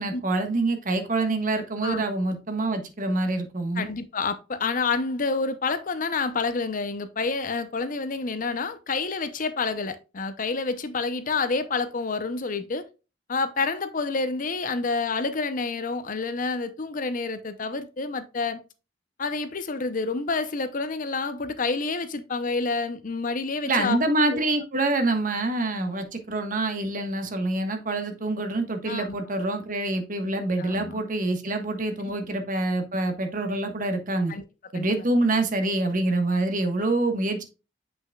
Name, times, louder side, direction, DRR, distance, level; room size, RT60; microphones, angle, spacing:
voice 1, 0.0-3.9 23.7-34.3 34.7-37.4, right 2 dB, 45° right, 1.3 m, -26 dB
voice 2, 3.8-12.8 13.3-18.6 19.2-24.0 24.3-24.4 28.9-29.2 30.6-31.0 34.3-34.4 34.7-35.0, left 4 dB, 45° left, 0.7 m, -28 dB
7.7 x 6.1 x 2.3 m
head